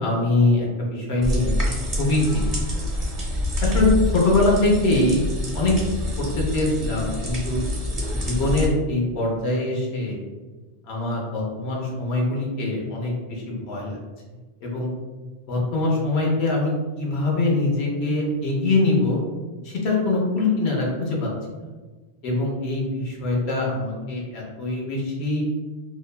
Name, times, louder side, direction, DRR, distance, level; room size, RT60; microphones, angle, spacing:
voice 1, 0.0-1.7 2.0-2.5 2.7-2.8 3.6-5.3 5.5-5.7 6.2-7.6 8.1-10.2 10.9-13.1 13.5-13.9 14.6-14.9 15.5-19.2 19.6-21.3 22.2-25.5, left 2 dB, 85° left, -2 dB, 1.0 m, -23 dB
sound 1, 1.2-8.7, left 1 dB, 45° right, 0.6 m, -26 dB
2.8 x 2.1 x 2.2 m, 1.3 s
omnidirectional pair, 1.1 m